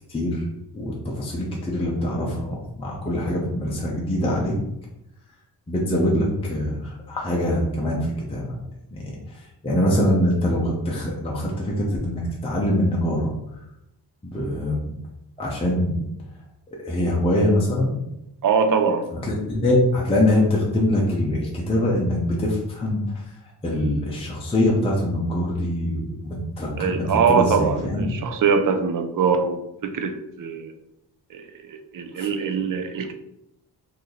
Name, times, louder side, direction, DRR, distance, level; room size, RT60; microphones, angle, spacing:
voice 1, 0.1-0.4 0.7-4.5 5.7-8.5 8.9-9.1 9.6-13.3 14.2-14.9 15.4-16.0 16.8-18.0 19.1-23.0 23.6-28.1 32.2-32.3, left 1 dB, 15° left, -3 dB, 0.6 m, -23 dB
voice 2, 18.4-19.1 26.8-29.6 29.8-30.1 30.4-30.7 31.3-33.1, right 6 dB, 55° right, 7 dB, 0.5 m, -22 dB
3.0 x 2.7 x 3.8 m, 0.84 s
wide cardioid pair, 150°, 41 cm